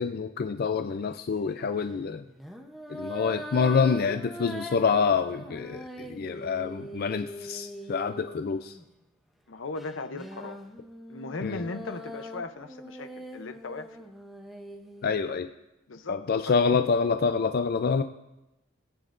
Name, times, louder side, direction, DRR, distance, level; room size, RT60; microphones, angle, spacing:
voice 1, 0.0-2.2 2.9-8.7 11.4-11.6 15.0-15.5 16.1-18.0, left 5 dB, 50° left, 8 dB, 0.4 m, -27 dB
sound 1, 0.6-0.9 2.3-8.9 9.8-15.4, equal, ahead, 0.8 m, -42 dB
voice 2, 9.5-10.6 11.1-14.1 15.9-16.6, left 3 dB, 80° left, 10 dB, 0.7 m, -37 dB
19.5 x 8.6 x 2.5 m, 0.95 s
head